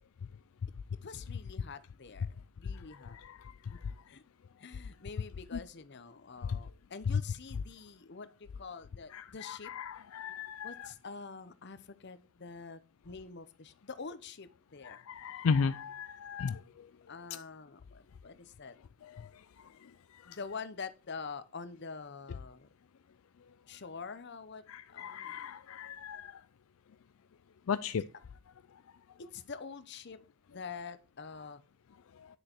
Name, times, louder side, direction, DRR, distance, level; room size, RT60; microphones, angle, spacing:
voice 1, 1.0-2.3 2.6-3.2 3.7-3.8 4.1-4.2 4.6-9.7 10.6-15.0 17.1-18.7 20.2-22.7 23.7-24.6 24.9-25.4 27.8-28.0 29.2-30.2 30.5-31.6, left 5 dB, 50° left, 13 dB, 0.8 m, -46 dB
voice 2, 3.2-3.5 9.1-10.9 14.8-16.6 19.2-19.3 20.3-20.4 24.7-26.3 27.7-28.0, left 5 dB, 65° left, 13 dB, 0.4 m, -35 dB
9.9 x 6.5 x 4.4 m, 0.35 s
head